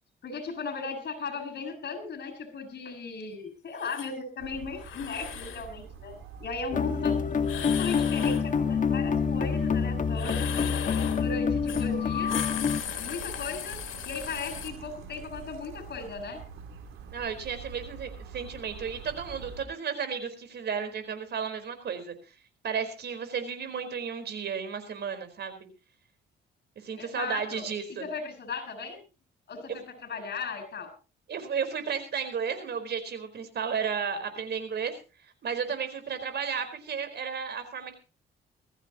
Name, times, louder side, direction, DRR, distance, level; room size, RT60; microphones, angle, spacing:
voice 1, 0.2-7.1 7.7-10.5 11.2-12.4 13.0-13.8 14.0-16.4 27.0-27.7 28.0-29.0 29.5-30.9, left 4 dB, 55° left, 9 dB, 6.8 m, -37 dB
sound 1, 3.8-4.1 4.7-5.7 7.4-8.5 10.1-11.3 11.7-11.9 12.2-14.7, left 11 dB, 85° left, 2.7 m, -37 dB
sound 2, 4.4-19.7, right 6 dB, 85° right, 3.5 m, -45 dB
sound 3, 6.7-12.8, left 6 dB, 40° left, 1.6 m, -27 dB
voice 2, 17.1-22.2 22.6-25.7 26.8-28.1 31.3-34.9 35.4-37.9, right 6 dB, 60° right, 9 dB, 4.5 m, -33 dB
21.5 x 14.5 x 2.9 m, 0.32 s
cardioid pair, 90°, 20 cm